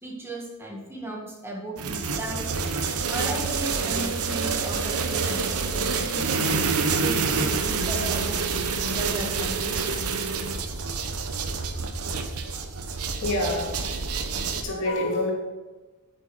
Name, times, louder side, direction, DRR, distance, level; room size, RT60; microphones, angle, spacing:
voice 1, 0.0-2.5 3.1-6.6 7.0-10.1, right 1 dB, 10° right, -2 dB, 2.0 m, -36 dB
sound 1, 1.8-14.6, right 4 dB, 85° right, 1.1 m, -27 dB
voice 2, 13.2-13.7 14.6-15.3, left 1 dB, 65° left, 0 dB, 2.4 m, -26 dB
9.1 x 6.7 x 6.1 m, 1.2 s
head